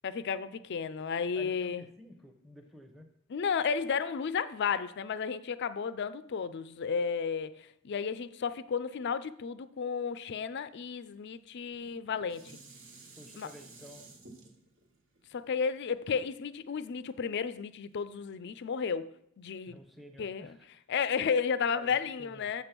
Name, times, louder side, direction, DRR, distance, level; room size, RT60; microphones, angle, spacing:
voice 1, 0.0-1.9 3.3-12.5 13.4-13.5 15.3-19.1 19.4-19.8 20.2-20.6 20.9-22.6, left 6 dB, 50° left, 0.4 m, -33 dB
voice 2, 1.3-3.1 13.2-14.2 19.7-20.8 21.8-22.5, left 1 dB, ahead, 0.8 m, -52 dB
Dishes pots and pans, 11.7-17.0 17.5-17.6, right 3 dB, 55° right, 1.4 m, -54 dB
7.3 x 5.3 x 5.9 m
head